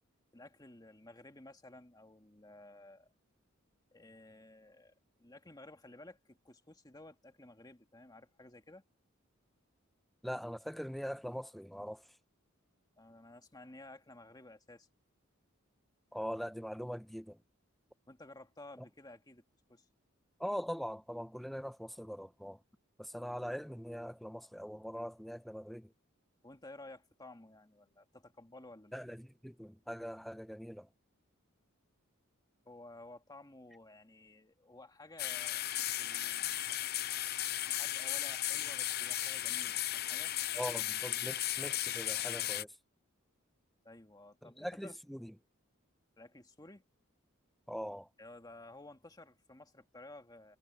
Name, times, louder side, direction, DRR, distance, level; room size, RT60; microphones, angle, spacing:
voice 1, 0.3-3.1 3.9-8.8 13.0-14.9 18.1-19.4 19.7-19.9 26.4-29.0 32.7-36.7 37.6-40.3 43.8-45.0 46.2-46.8 48.2-50.6, left 2 dB, 20° left, 1.9 m, -54 dB
voice 2, 10.2-12.1 16.1-17.4 20.4-22.6 23.0-25.9 28.9-30.9 40.5-42.8 44.4-45.3 47.7-48.1, equal, ahead, 0.9 m, -42 dB
sound 1, 35.2-42.6, left 13 dB, 50° left, 0.6 m, -35 dB
head